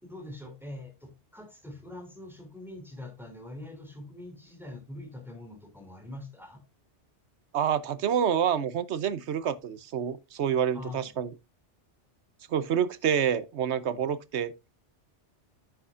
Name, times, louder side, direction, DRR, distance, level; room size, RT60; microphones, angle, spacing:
voice 1, 0.0-6.6 10.7-11.1, left 1 dB, ahead, 2.9 m, -43 dB
voice 2, 7.5-11.3 12.5-14.5, right 8 dB, 70° right, 1.0 m, -27 dB
10.5 x 8.4 x 2.5 m
omnidirectional pair, 1.2 m